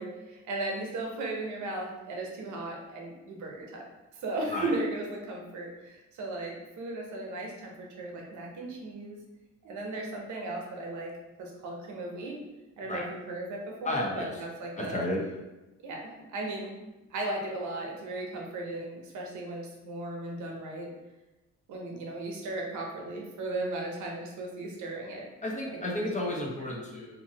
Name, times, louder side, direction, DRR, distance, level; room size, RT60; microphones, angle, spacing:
voice 1, 0.0-3.9 4.1-9.2 9.6-11.1 11.4-12.3 12.8-15.0 15.8-16.7 17.1-20.9 21.7-25.3 25.8-25.9 26.2-26.3 26.7-26.8, right 2 dB, 75° right, 0 dB, 0.8 m, -36 dB
voice 2, 13.8-14.3 14.8-15.2 25.4-27.2, left 1 dB, 25° left, -2 dB, 0.7 m, -32 dB
2.7 x 2.6 x 2.7 m, 1.0 s
cardioid pair, 90°, 30 cm